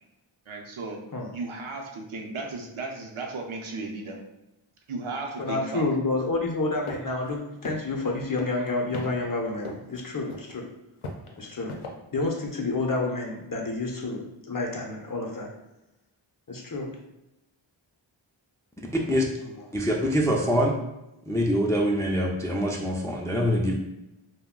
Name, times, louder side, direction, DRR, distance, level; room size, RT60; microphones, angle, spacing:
voice 1, 0.5-1.0 1.3-4.2 4.9-5.8, right 3 dB, 75° right, 1 dB, 0.6 m, -35 dB
voice 2, 5.4-10.6 11.4-11.8 12.1-15.5 16.5-16.9, left 3 dB, 45° left, 1 dB, 0.6 m, -29 dB
sound 1, 6.9-7.0 7.3-7.4 7.6-8.1 8.4-9.1 9.6-10.0 10.3-10.5 11.0-11.9, left 3 dB, 85° left, 0.6 m, -36 dB
voice 3, 18.9-19.3 19.7-20.8 21.3-23.7, equal, 5° left, -1 dB, 0.3 m, -24 dB
2.3 x 2.1 x 3.6 m, 0.92 s
wide cardioid pair, 45°, 49 cm